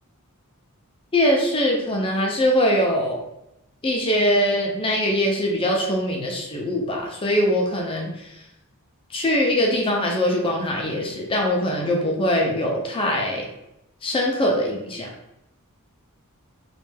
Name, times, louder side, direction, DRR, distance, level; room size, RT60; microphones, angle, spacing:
voice 1, 1.1-3.2 3.8-8.4 9.1-13.5 14.0-15.1, equal, 25° left, -1 dB, 0.6 m, -22 dB
3.2 x 2.5 x 3.3 m, 0.85 s
head